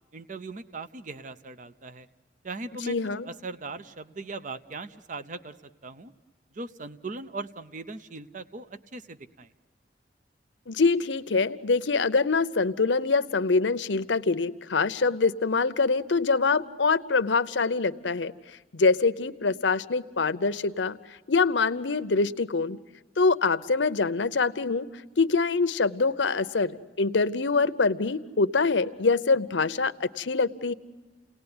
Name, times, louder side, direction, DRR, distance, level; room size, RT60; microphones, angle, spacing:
voice 1, 0.1-2.1 2.4-3.0 3.2-5.5 5.8-6.1 6.5-9.5, right 3 dB, 45° right, 12 dB, 0.8 m, -39 dB
voice 2, 2.9-3.3 10.7-18.3 18.7-21.0 21.3-22.8 23.2-24.9 25.2-30.7, left 4 dB, 85° left, 12 dB, 0.8 m, -24 dB
29.0 x 19.0 x 9.7 m, 1.3 s
head